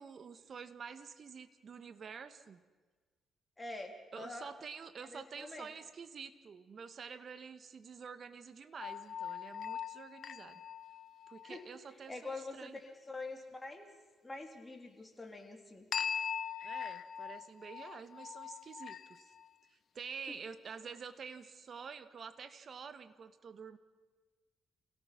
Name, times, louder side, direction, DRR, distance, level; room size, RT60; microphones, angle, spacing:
voice 1, 0.0-2.6 4.1-10.6 11.3-12.8 16.6-19.3 19.7-23.8, right 6 dB, 50° right, 11 dB, 1.4 m, -48 dB
voice 2, 3.6-4.5 5.1-5.7 11.4-11.7 12.1-13.9 14.2-15.9 20.3-20.4, left 2 dB, 15° left, 2 dB, 3.7 m, -45 dB
sound 1, 8.8-11.7 15.9-19.5, left 8 dB, 55° left, 0.7 m, -41 dB
28.0 x 17.5 x 6.0 m, 1.3 s
cardioid pair, 90°, 0 cm